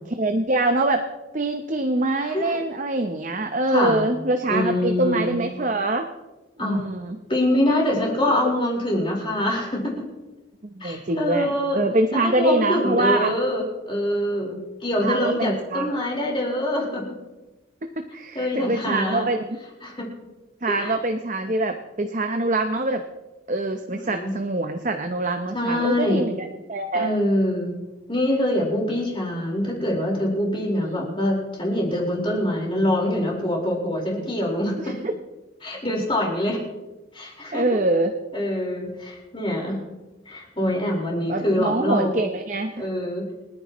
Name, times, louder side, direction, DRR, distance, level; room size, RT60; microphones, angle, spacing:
voice 1, 0.1-1.1 1.3-6.1 6.6-7.2 10.6-13.3 15.0-15.9 17.8-19.6 20.6-23.0 23.5-27.1 30.7-31.2 34.8-35.2 37.5-38.1 41.3-42.8, right 2 dB, 40° right, 5 dB, 0.8 m, -24 dB
voice 2, 2.1-2.6 3.7-4.0 4.5-5.4 6.6-6.8 7.3-9.9 10.8-11.8 12.1-17.0 18.3-19.3 19.8-20.1 20.7-20.9 23.9-24.3 25.5-26.3 26.9-27.7 28.1-34.9 35.6-36.6 37.1-37.6 38.3-39.8 40.3-42.2 42.8-43.3, left 1 dB, 25° left, -3 dB, 4.5 m, -24 dB
29.5 x 9.9 x 3.1 m, 1.1 s
head